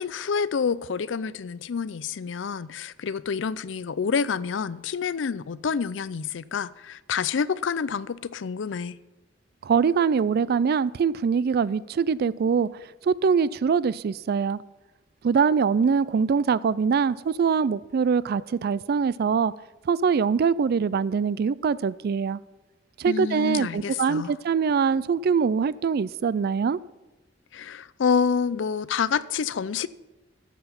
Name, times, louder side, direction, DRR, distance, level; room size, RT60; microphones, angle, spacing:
voice 1, 0.0-9.0 23.1-24.3 27.5-29.9, left 6 dB, 75° left, 0.4 m, -28 dB
voice 2, 9.6-14.6 15.2-19.5 19.9-22.4 23.0-26.8, right 6 dB, 55° right, 0.3 m, -23 dB
12.5 x 7.8 x 5.8 m
head